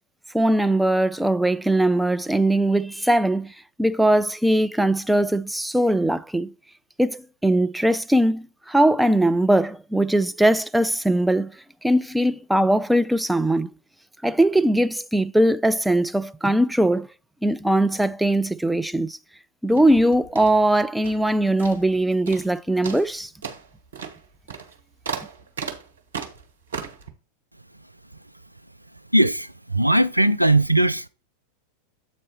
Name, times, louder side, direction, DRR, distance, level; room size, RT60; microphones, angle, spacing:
voice 1, 0.3-3.5 3.8-6.5 7.0-11.5 11.8-13.7 14.2-17.1 17.4-19.2 19.6-23.3, right 1 dB, 5° right, 0.3 m, -20 dB
sound 1, 19.7-21.3 21.6-22.0 22.3-22.5 22.8-27.1, right 6 dB, 65° right, 1.2 m, -36 dB
voice 2, 29.1-31.1, right 1 dB, 90° right, 0.3 m, -19 dB
7.9 x 4.2 x 4.3 m
figure-of-eight pair, 90°, 0 cm